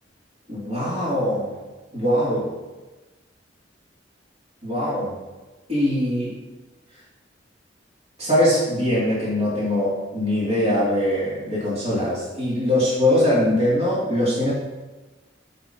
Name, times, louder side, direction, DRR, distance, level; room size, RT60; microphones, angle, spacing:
voice 1, 0.5-1.5 1.9-2.5 4.6-5.2 5.7-6.4 8.2-14.5, left 1 dB, 35° right, -9 dB, 2.5 m, -22 dB
8.6 x 6.1 x 2.8 m, 1.2 s
head